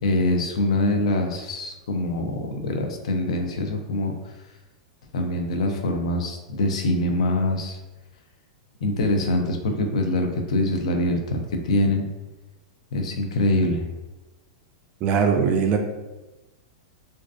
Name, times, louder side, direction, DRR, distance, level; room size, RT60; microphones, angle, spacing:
voice 1, 0.0-4.3 5.1-7.8 8.8-11.4 11.6-12.1 12.9-13.9, left 1 dB, 75° left, 4 dB, 0.4 m, -24 dB
voice 2, 15.0-15.8, right 6 dB, 40° right, 4 dB, 0.3 m, -20 dB
2.4 x 2.3 x 2.3 m, 1.1 s
hypercardioid pair, 125°, 3 cm